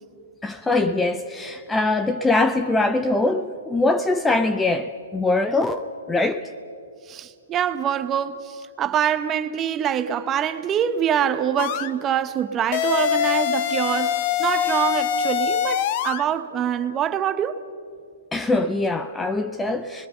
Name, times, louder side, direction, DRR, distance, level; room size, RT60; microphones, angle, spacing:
voice 1, 0.4-6.5 18.3-20.1, left 2 dB, 5° left, 0.6 m, -22 dB
voice 2, 7.1-17.6, right 9 dB, 20° right, 0.9 m, -25 dB
sound 1, 11.6-11.9 12.7-16.2, left 9 dB, 40° left, 0.9 m, -23 dB
28.5 x 21.0 x 5.5 m
hypercardioid pair, 150°, 0 cm